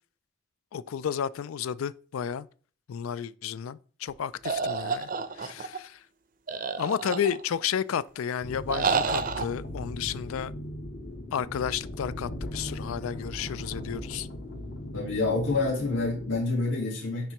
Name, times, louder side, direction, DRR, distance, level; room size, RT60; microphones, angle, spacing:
voice 1, 0.7-2.5 2.9-5.1 5.4-6.0 6.8-10.5 11.3-14.3, left 8 dB, 90° left, 0.4 m, -32 dB
sound 1, 4.5-5.8 6.5-7.6 8.7-9.5, right 5 dB, 40° right, 0.5 m, -29 dB
sound 2, 8.4-16.4, left 1 dB, 50° left, 1.1 m, -38 dB
voice 2, 14.9-17.3, left 3 dB, 70° left, 2.4 m, -27 dB
10.0 x 3.4 x 3.0 m
head